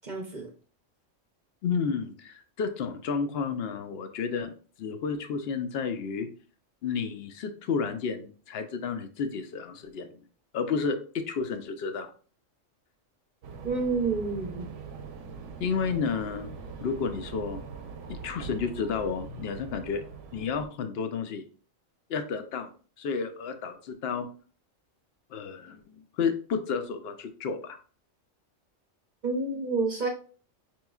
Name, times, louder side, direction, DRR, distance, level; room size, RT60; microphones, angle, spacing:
voice 1, 0.0-0.5 13.6-14.7 29.2-30.1, right 3 dB, 45° right, 1 dB, 0.7 m, -29 dB
voice 2, 1.6-6.3 6.8-10.2 10.5-12.1 15.6-16.5 16.8-17.6 18.1-20.0 20.3-21.4 22.1-22.7 23.0-24.3 25.3-27.8, left 5 dB, 60° left, 8 dB, 0.7 m, -31 dB
sound 1, 13.4-20.7, right 5 dB, 75° right, 0.9 m, -42 dB
5.1 x 3.0 x 2.3 m, 0.40 s
omnidirectional pair, 1.3 m